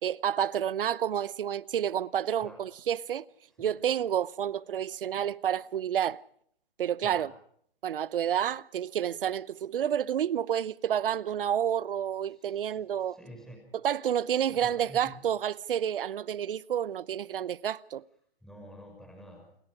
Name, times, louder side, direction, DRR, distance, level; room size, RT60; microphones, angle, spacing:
voice 1, 0.0-3.2 3.6-6.2 6.8-7.3 7.8-13.2 13.8-18.0, right 9 dB, 65° right, 0.9 m, -29 dB
voice 2, 7.0-7.3 12.3-13.7 14.5-15.1 18.4-19.5, equal, ahead, 6.0 m, -49 dB
29.0 x 21.0 x 4.9 m
hypercardioid pair, 140°, 30 cm